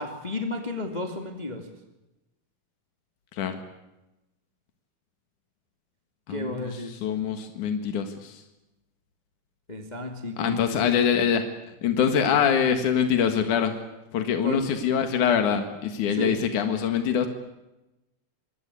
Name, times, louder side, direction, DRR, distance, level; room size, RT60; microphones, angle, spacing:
voice 1, 0.0-1.7 6.3-7.0 9.7-11.0 12.2-12.4 14.4-14.6 16.2-16.4, left 1 dB, 15° left, 4 dB, 2.1 m, -32 dB
voice 2, 6.3-8.4 10.4-11.4 11.8-13.8 14.1-17.3, left 7 dB, 80° left, 7 dB, 3.3 m, -24 dB
25.5 x 22.0 x 8.4 m, 0.97 s
omnidirectional pair, 3.5 m